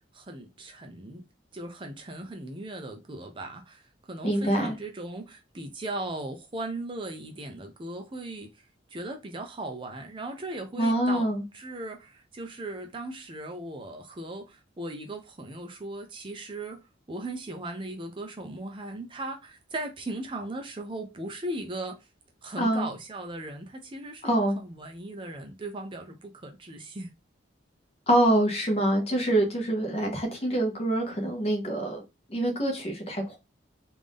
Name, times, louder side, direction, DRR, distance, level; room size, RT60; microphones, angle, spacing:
voice 1, 0.1-1.2 1.5-8.6 8.9-16.8 17.1-22.1 22.4-27.1, right 2 dB, 25° right, 0.5 m, -38 dB
voice 2, 4.2-4.7 10.8-11.4 22.6-22.9 24.2-24.6 28.1-32.0 32.3-33.4, right 1 dB, 30° left, 1.0 m, -25 dB
3.4 x 2.5 x 3.5 m
head